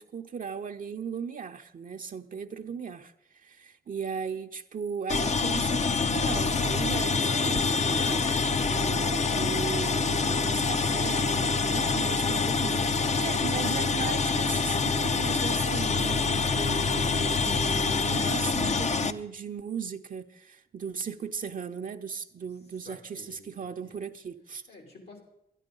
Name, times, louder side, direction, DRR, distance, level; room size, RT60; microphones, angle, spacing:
voice 1, 0.0-8.4 8.7-24.6, right 6 dB, 55° right, 0.7 m, -37 dB
sound 1, 5.1-19.1, left 4 dB, 45° left, 0.6 m, -26 dB
voice 2, 22.8-24.0 24.7-25.2, left 2 dB, 80° left, 3.3 m, -51 dB
12.0 x 11.0 x 5.4 m
cardioid pair, 70°, 17 cm